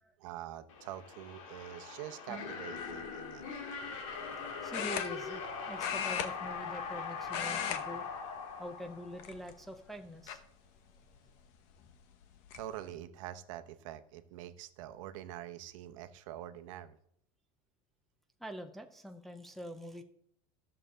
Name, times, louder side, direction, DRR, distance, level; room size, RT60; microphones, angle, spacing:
voice 1, 0.2-3.4 12.5-17.0, right 12 dB, 70° right, 9 dB, 0.9 m, -45 dB
sound 1, 0.7-9.6, left 5 dB, 70° left, 2.4 m, -41 dB
sound 2, 2.8-3.1 4.7-5.5 5.8-7.0 7.2-7.8 8.1-8.4 9.1-9.7 10.3-10.4 11.8-11.9 12.2-12.6, left 9 dB, 45° left, 0.9 m, -37 dB
voice 2, 4.6-10.4 18.4-20.0, equal, ahead, 4 dB, 0.4 m, -45 dB
13.5 x 6.8 x 3.8 m, 0.69 s
supercardioid pair, 175°, 17 cm